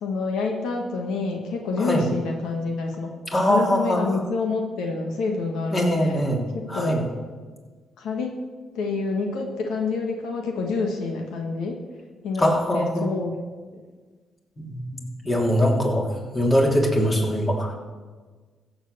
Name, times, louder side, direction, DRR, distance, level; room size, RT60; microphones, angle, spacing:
voice 1, 0.0-3.1 3.5-6.2 6.5-7.0 8.0-8.3 8.7-11.8 12.2-13.4, left 4 dB, 85° left, 2 dB, 1.7 m, -27 dB
voice 2, 3.3-4.2 5.7-6.4 6.7-7.0 12.4-13.1 14.6-17.7, equal, 25° left, 0 dB, 3.1 m, -22 dB
15.0 x 8.0 x 6.8 m, 1.4 s
cardioid pair, 90°, 0 cm